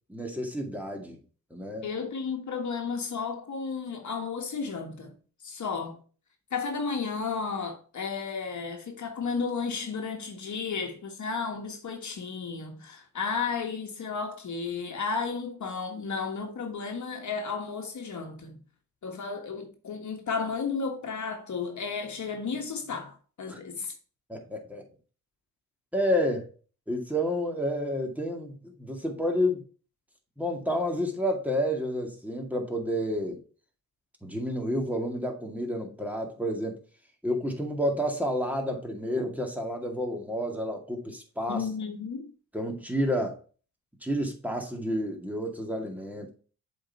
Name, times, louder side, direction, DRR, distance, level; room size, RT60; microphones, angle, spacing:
voice 1, 0.1-1.2 1.5-1.9 23.5-23.6 24.3-24.8 25.9-26.5 26.9-29.6 30.4-33.4 34.2-36.8 37.2-41.6 42.5-43.4 44.0-46.3, equal, 5° right, 2.1 m, -30 dB
voice 2, 1.8-5.1 5.4-6.0 6.5-18.6 19.0-23.9 41.5-42.3, left 5 dB, 50° left, 1.5 m, -33 dB
7.3 x 4.6 x 4.3 m
supercardioid pair, 65°, 36 cm